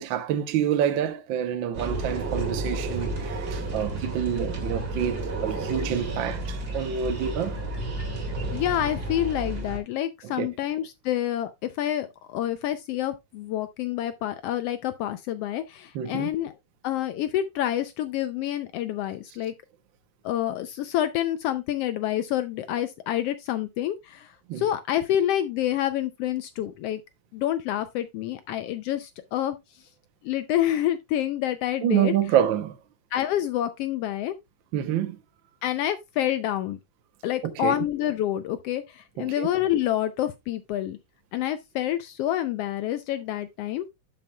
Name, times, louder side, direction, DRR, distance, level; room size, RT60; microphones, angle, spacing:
voice 1, 0.0-7.6 10.2-10.5 15.9-16.3 24.5-24.6 31.8-32.8 34.7-35.2 37.4-37.8 39.2-39.5, right 9 dB, 80° right, 1.0 m, -27 dB
sound 1, 1.7-9.8, right 2 dB, 35° right, 2.2 m, -31 dB
voice 2, 8.5-16.5 16.8-19.5 20.2-27.0 27.3-29.6 30.2-32.1 33.1-34.3 35.6-36.8 37.2-41.0 41.3-43.9, left 12 dB, 85° left, 1.4 m, -28 dB
11.0 x 6.0 x 2.2 m
omnidirectional pair, 3.3 m